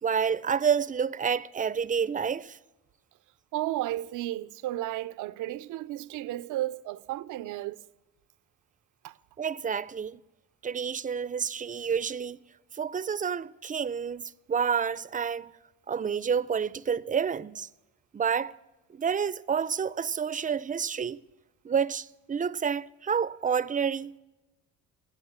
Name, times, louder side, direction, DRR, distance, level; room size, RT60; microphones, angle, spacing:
voice 1, 0.0-2.6 9.4-10.2 10.6-12.4 12.7-15.5 15.9-17.7 18.1-18.5 18.9-21.2 21.6-24.2, right 7 dB, 25° right, 0.5 m, -29 dB
voice 2, 3.5-7.8 9.0-9.1, right 15 dB, 85° right, 0.6 m, -33 dB
15.0 x 8.6 x 8.7 m
cardioid pair, 90°, 30 cm